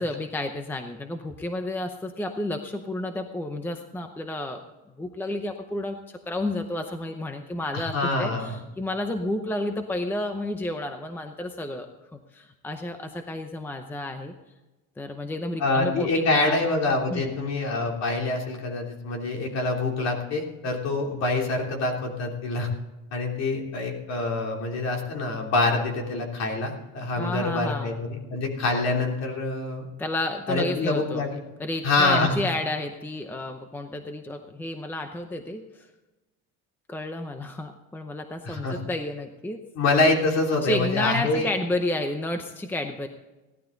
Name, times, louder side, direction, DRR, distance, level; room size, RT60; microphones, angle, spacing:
voice 1, 0.0-4.6 5.0-11.9 12.1-14.3 15.0-16.6 17.1-17.3 27.2-27.9 30.0-31.2 31.6-35.9 36.9-39.6 40.6-43.1, left 1 dB, 5° left, 6 dB, 0.7 m, -31 dB
voice 2, 7.7-8.6 15.6-22.7 23.1-29.8 30.5-31.4 31.8-32.3 38.4-38.8 39.7-41.5, left 2 dB, 50° left, 1 dB, 3.2 m, -25 dB
16.5 x 12.0 x 3.9 m, 1.1 s
cardioid pair, 165°, 34 cm